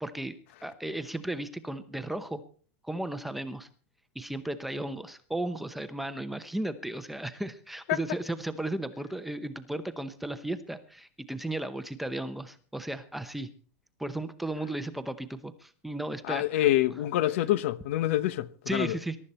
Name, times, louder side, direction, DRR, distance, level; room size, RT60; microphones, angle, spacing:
voice 1, 0.0-2.4 2.8-3.7 4.1-13.5 14.0-16.7 18.7-19.2, right 1 dB, ahead, 0.8 m, -35 dB
voice 2, 16.2-19.0, left 14 dB, 60° left, 0.9 m, -26 dB
22.0 x 12.5 x 4.3 m
supercardioid pair, 175°, 8 cm